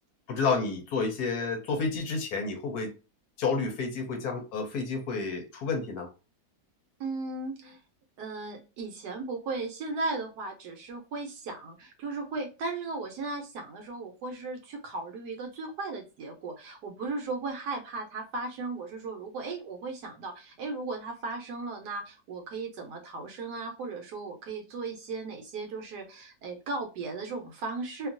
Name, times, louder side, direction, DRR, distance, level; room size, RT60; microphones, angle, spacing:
voice 1, 0.3-2.9 3.4-6.1, left 4 dB, 70° left, 1.0 m, -30 dB
voice 2, 7.0-7.8 8.2-28.1, right 3 dB, 70° right, 1.2 m, -36 dB
2.9 x 2.4 x 2.5 m
omnidirectional pair, 1.9 m